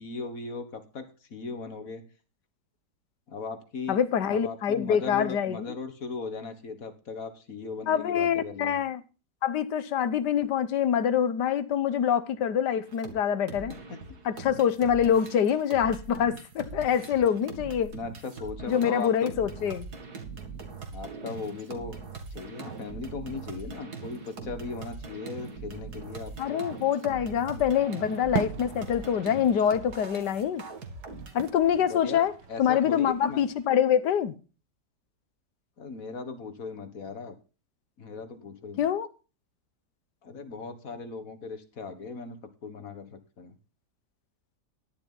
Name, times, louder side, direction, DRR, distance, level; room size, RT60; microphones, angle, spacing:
voice 1, 0.0-2.1 3.3-4.0 4.3-8.8 13.7-13.8 17.9-19.4 20.9-22.0 22.3-26.6 27.5-27.7 31.8-33.4 35.8-37.4 38.0-38.9 40.2-43.6, left 4 dB, 55° left, 1.9 m, -38 dB
voice 2, 3.9-5.7 7.9-9.0 9.4-13.7 14.2-17.9 18.7-19.9 26.4-30.6 31.3-32.3 32.6-34.3 38.8-39.1, left 8 dB, 80° left, 1.6 m, -25 dB
sound 1, 12.9-13.1 13.5-31.5, right 4 dB, 65° right, 2.6 m, -42 dB
sound 2, 27.7-33.7, right 7 dB, 90° right, 1.6 m, -40 dB
12.5 x 10.5 x 3.9 m
omnidirectional pair, 1.8 m